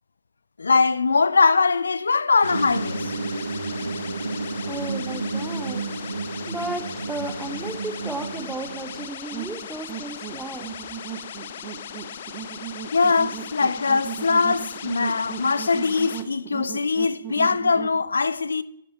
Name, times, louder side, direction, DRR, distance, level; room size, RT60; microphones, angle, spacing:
voice 1, 0.6-3.1 12.9-18.6, left 4 dB, 80° left, 0.4 m, -21 dB
sound 1, 2.4-16.2, left 9 dB, 55° left, 0.8 m, -38 dB
sound 2, 2.4-9.1, right 3 dB, 85° right, 1.1 m, -31 dB
voice 2, 4.6-5.8 6.5-10.8, right 2 dB, 5° right, 1.3 m, -34 dB
sound 3, 9.3-18.0, right 10 dB, 35° right, 1.3 m, -37 dB
15.0 x 6.6 x 4.2 m
figure-of-eight pair, 125°, 0 cm